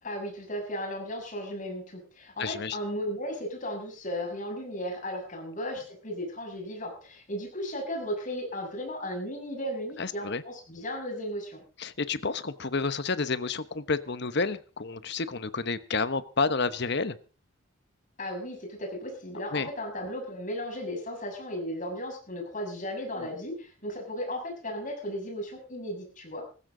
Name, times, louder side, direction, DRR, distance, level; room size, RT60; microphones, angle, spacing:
voice 1, 0.0-11.6 18.2-26.4, equal, 40° left, 2 dB, 7.1 m, -35 dB
voice 2, 2.4-2.8 10.0-10.4 11.8-17.2 19.5-19.7, left 4 dB, 55° left, 13 dB, 1.1 m, -30 dB
19.0 x 15.5 x 3.9 m, 0.37 s
head